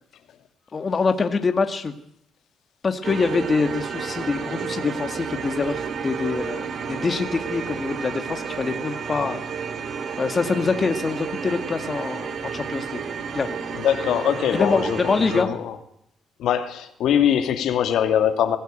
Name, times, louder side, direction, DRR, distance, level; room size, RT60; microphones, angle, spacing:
voice 1, 0.7-1.9 2.8-9.4 10.2-13.0 13.3-13.6 14.5-15.5, left 4 dB, 35° left, 7 dB, 2.1 m, -25 dB
sound 1, 3.0-15.4, right 6 dB, 60° right, 3.0 m, -31 dB
voice 2, 13.8-15.8 16.4-18.6, left 9 dB, 80° left, 7 dB, 2.6 m, -22 dB
22.0 x 16.0 x 9.2 m, 0.72 s
cardioid pair, 90°, 0 cm